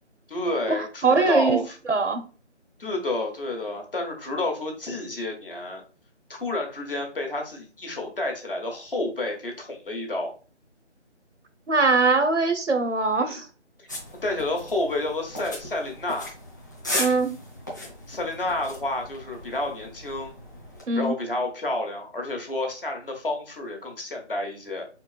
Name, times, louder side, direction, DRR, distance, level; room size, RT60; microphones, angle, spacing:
voice 1, 0.3-1.8 2.8-5.8 6.3-10.3 13.1-13.4 14.2-16.3 18.1-20.4 20.9-24.8, left 2 dB, 50° left, 1.6 m, -30 dB
voice 2, 1.0-1.6 1.9-2.2 11.7-13.5 17.0-17.4 20.9-21.1, right 3 dB, 80° right, 1.1 m, -21 dB
sound 1, 13.9-20.8, left 1 dB, 15° left, 0.9 m, -36 dB
4.4 x 4.3 x 2.4 m
figure-of-eight pair, 165°, 35 cm